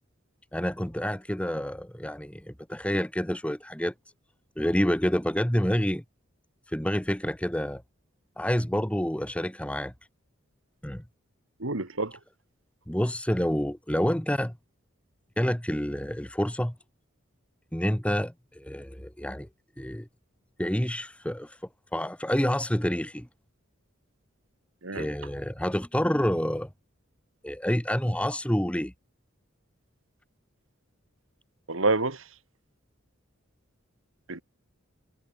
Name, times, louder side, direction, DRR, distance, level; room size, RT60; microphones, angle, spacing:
voice 1, 0.5-3.9 4.6-6.0 6.7-7.8 8.4-9.9 10.8-11.0 12.9-14.5 15.4-16.7 17.7-19.5 19.8-20.1 20.6-21.6 21.9-23.3 24.9-26.7 27.4-28.9, equal, 5° left, 1.2 m, -28 dB
voice 2, 11.6-12.2 24.8-25.1 31.7-32.3 34.3-34.4, right 3 dB, 75° right, 2.4 m, -28 dB
head